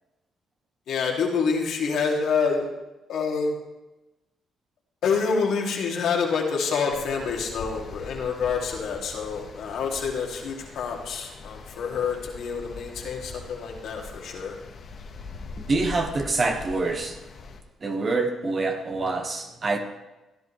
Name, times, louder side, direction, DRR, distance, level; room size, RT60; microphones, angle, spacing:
voice 1, 0.9-2.7 3.1-3.6 5.0-14.6, left 5 dB, 75° left, 0 dB, 2.5 m, -27 dB
sound 1, 6.9-17.6, left 4 dB, 50° left, 1.3 m, -42 dB
voice 2, 15.6-17.2 17.8-19.8, right 3 dB, 40° right, 5 dB, 1.5 m, -26 dB
16.0 x 10.5 x 3.3 m, 1.0 s
cardioid pair, 90°, 0 cm